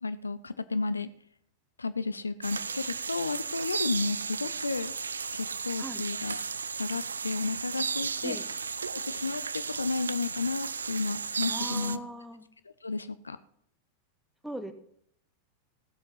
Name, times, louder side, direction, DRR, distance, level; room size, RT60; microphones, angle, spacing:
voice 1, 0.0-1.1 1.8-4.9 5.3-6.4 6.7-8.4 8.9-12.0 12.8-13.4, left 3 dB, 80° left, 14 dB, 0.6 m, -32 dB
sound 1, 2.4-12.0, right 5 dB, 75° right, 0.4 m, -34 dB
voice 2, 11.5-12.4 14.4-14.7, right 1 dB, ahead, 8 dB, 1.5 m, -39 dB
16.0 x 7.8 x 5.7 m, 0.67 s
figure-of-eight pair, 90°, 0 cm